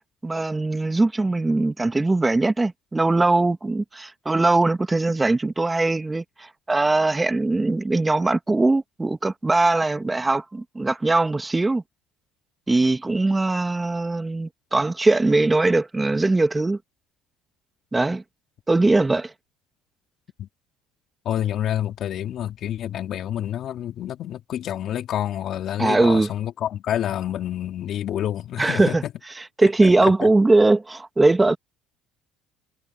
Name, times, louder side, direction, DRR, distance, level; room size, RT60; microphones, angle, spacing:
voice 1, 0.2-11.8 12.7-16.8 17.9-18.2 18.7-19.3 25.8-26.3 28.6-29.0 29.6-31.6, right 2 dB, 15° right, 1.7 m, -20 dB
voice 2, 21.2-29.1 29.8-30.3, left 11 dB, 55° left, 2.9 m, -28 dB
supercardioid pair, 90°, 0 cm